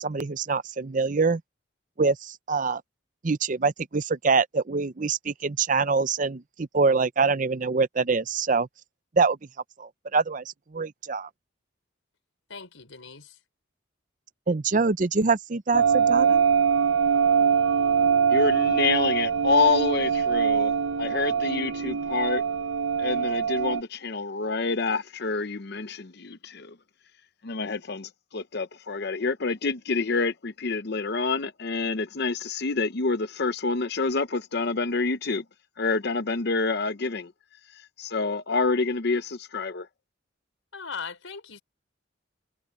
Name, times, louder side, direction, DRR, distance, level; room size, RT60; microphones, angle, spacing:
voice 1, 0.0-1.4 2.0-2.8 3.2-8.7 9.2-9.4 9.8-10.4 10.7-11.3 14.5-16.4, right 4 dB, 40° right, 0.6 m, -25 dB
voice 2, 12.5-13.4 40.7-41.6, left 5 dB, 80° left, 4.6 m, -39 dB
sound 1, 15.7-23.8, right 6 dB, 75° right, 0.7 m, -23 dB
voice 3, 18.3-22.4 23.0-26.8 27.4-35.4 35.8-37.3 37.7-39.9, left 4 dB, 55° left, 0.7 m, -27 dB
head